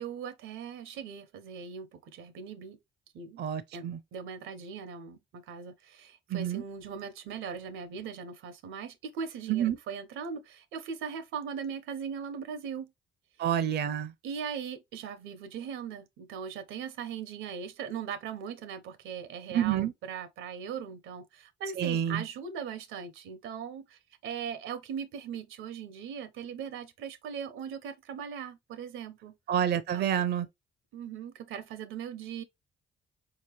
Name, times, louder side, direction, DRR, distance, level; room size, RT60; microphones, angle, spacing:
voice 1, 0.0-2.8 3.1-12.9 14.2-29.3 29.9-30.3 30.9-32.4, right 7 dB, 85° right, 0.8 m, -39 dB
voice 2, 3.4-4.0 6.3-6.6 9.5-9.8 13.4-14.1 19.5-19.9 21.8-22.2 29.5-30.5, right 10 dB, 55° right, 0.5 m, -28 dB
4.5 x 2.9 x 2.9 m
cardioid pair, 90°, 20 cm